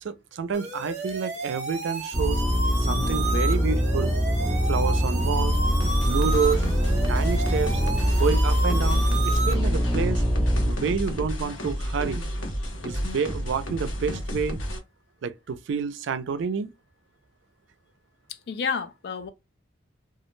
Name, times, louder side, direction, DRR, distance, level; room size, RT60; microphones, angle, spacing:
voice 1, 0.0-2.4 2.8-4.1 4.7-5.6 6.0-6.6 7.1-7.8 8.2-10.2 10.6-12.3 12.8-14.6 15.2-16.7, right 5 dB, 80° right, 0.4 m, -29 dB
sound 1, 0.5-9.5, right 3 dB, 35° right, 0.7 m, -32 dB
sound 2, 2.1-10.7, equal, ahead, 0.6 m, -23 dB
sound 3, 5.8-14.8, equal, 90° left, 0.8 m, -32 dB
voice 2, 18.3-19.3, left 6 dB, 55° left, 0.3 m, -30 dB
2.3 x 2.1 x 3.0 m
head